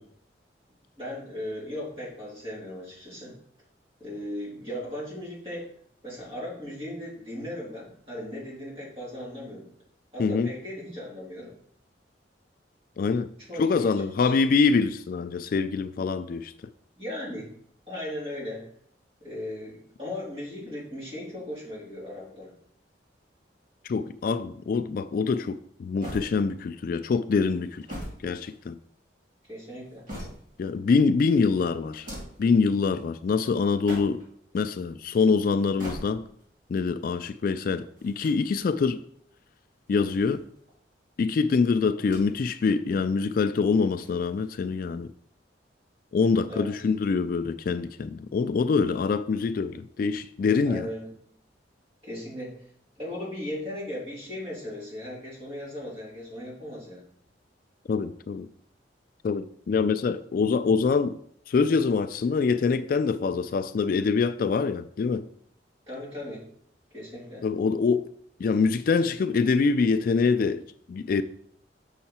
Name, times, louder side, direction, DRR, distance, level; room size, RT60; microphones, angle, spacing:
voice 1, 1.0-3.4 4.0-5.7 6.0-9.7 10.1-11.5 13.5-14.3 17.0-17.5 17.9-18.7 19.2-22.5 29.5-30.1 46.5-46.8 50.7-51.2 52.0-52.7 53.0-57.1 65.9-66.5 66.9-67.5, left 1 dB, 30° right, 3.4 m, -37 dB
voice 2, 13.0-13.3 13.6-16.5 23.8-27.8 28.2-28.8 30.6-32.1 32.4-34.2 34.5-36.2 36.7-39.0 39.9-40.4 41.2-45.1 46.1-50.9 57.9-58.5 59.2-61.2 61.5-65.3 67.4-68.1 68.4-70.6 70.9-71.2, left 4 dB, 50° left, 0.3 m, -25 dB
sound 1, 26.0-26.8 27.6-29.0 29.6-30.7 31.8-32.5 33.6-34.4 35.6-36.5 38.0-38.9 39.8-40.8 42.0-42.5 42.9-43.0 43.9-44.7, equal, 50° right, 3.0 m, -42 dB
6.6 x 5.7 x 4.3 m
head